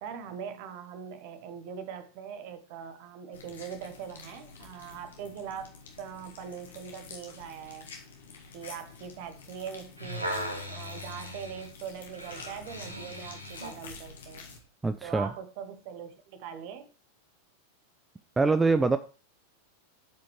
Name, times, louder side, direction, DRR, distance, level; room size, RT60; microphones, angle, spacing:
voice 1, 0.0-7.9 8.5-14.5 15.0-16.9, right 7 dB, 45° right, 1.1 m, -41 dB
sound 1, 3.3-14.6, left 5 dB, 65° left, 1.5 m, -49 dB
sound 2, 10.0-13.8 14.5-14.6, equal, 85° right, 1.2 m, -38 dB
voice 2, 14.8-15.3 18.4-19.0, right 3 dB, 10° right, 0.4 m, -24 dB
12.5 x 5.1 x 3.1 m
figure-of-eight pair, 90°, 0 cm